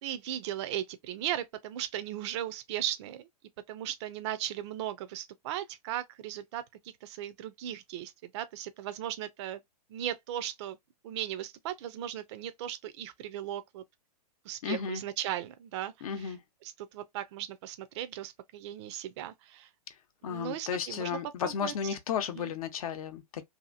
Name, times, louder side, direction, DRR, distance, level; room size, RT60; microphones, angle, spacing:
voice 1, 0.0-3.3 3.7-6.6 7.0-9.6 9.9-10.8 11.0-13.8 14.4-16.3 16.6-19.7 20.2-21.7 22.4-22.5, right 12 dB, 45° right, 0.5 m, -37 dB
voice 2, 14.6-15.0 16.0-16.4 20.2-23.4, left 7 dB, 60° left, 0.7 m, -34 dB
2.8 x 2.5 x 2.4 m
hypercardioid pair, 130°, 20 cm